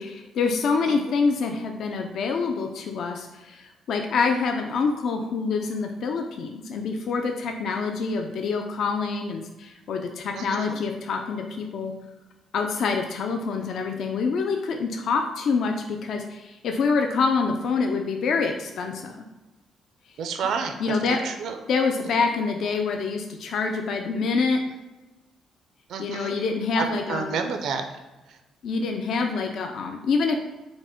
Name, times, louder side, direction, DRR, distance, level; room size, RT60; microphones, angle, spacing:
voice 1, 0.0-11.9 12.5-19.2 20.8-21.2 21.7-24.6 26.0-27.3 28.6-30.4, left 4 dB, 55° left, 4 dB, 0.3 m, -26 dB
voice 2, 10.3-10.8 20.2-21.6 25.9-26.3 26.8-27.8, right 5 dB, 65° right, 6 dB, 0.4 m, -30 dB
4.9 x 2.1 x 3.6 m, 1.1 s
cardioid pair, 155°, 0 cm